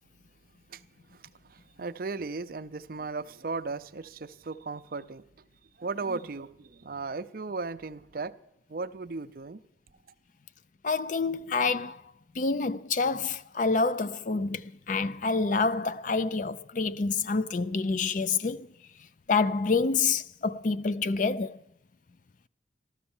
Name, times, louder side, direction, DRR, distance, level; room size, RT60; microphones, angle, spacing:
voice 1, 1.1-5.2 5.8-8.4 8.7-9.6, right 4 dB, 50° right, 0.5 m, -36 dB
voice 2, 10.8-12.0 12.4-18.7 19.3-21.6, left 4 dB, 45° left, 0.5 m, -27 dB
13.5 x 13.0 x 7.2 m
head